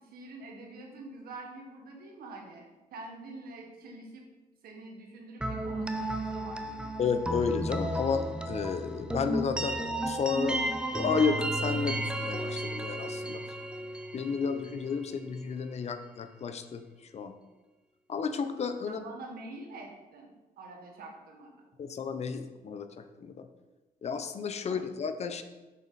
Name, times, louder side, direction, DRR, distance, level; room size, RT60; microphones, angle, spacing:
voice 1, 0.0-2.7 2.9-4.3 4.6-6.9 18.8-21.5 24.6-24.8, right 2 dB, 80° right, 1 dB, 1.7 m, -46 dB
sound 1, 5.4-15.2, right 1 dB, 5° right, 0.6 m, -33 dB
voice 2, 7.0-9.8 10.1-10.6 10.9-13.4 14.1-16.8 17.1-17.3 18.1-19.0 21.8-22.9 23.2-23.5 24.0-25.4, left 5 dB, 45° left, 9 dB, 0.6 m, -31 dB
7.3 x 6.1 x 4.1 m, 1.2 s
cardioid pair, 120°, 15 cm